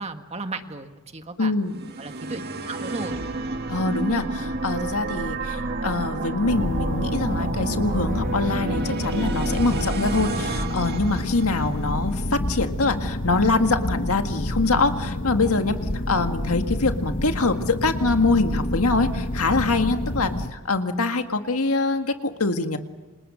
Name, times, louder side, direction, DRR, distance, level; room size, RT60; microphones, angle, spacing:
voice 1, 0.0-1.5 2.0-3.2, right 3 dB, 30° right, 6 dB, 1.8 m, -35 dB
voice 2, 1.4-1.8 3.7-12.2 12.5-15.8 16.1-22.8, left 3 dB, 80° left, 6 dB, 1.9 m, -24 dB
sound 1, 1.7-11.9, right 3 dB, 45° right, 1.9 m, -30 dB
sound 2, 6.5-20.5, left 1 dB, 55° left, 1.4 m, -28 dB
29.0 x 27.0 x 6.4 m, 1.2 s
head